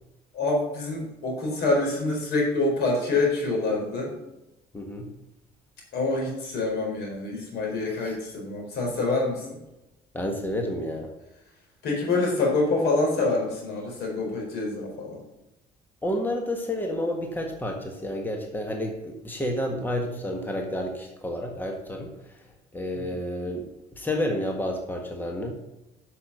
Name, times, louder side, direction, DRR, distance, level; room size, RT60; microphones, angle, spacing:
voice 1, 0.3-4.1 5.9-9.6 11.8-15.2 22.9-23.1, left 2 dB, 75° left, 0 dB, 4.4 m, -26 dB
voice 2, 4.7-5.1 10.1-11.1 16.0-22.1 22.7-23.6 23.9-25.5, left 1 dB, 10° left, 2 dB, 1.6 m, -30 dB
8.4 x 6.8 x 6.7 m, 0.96 s
cardioid pair, 110°, 17 cm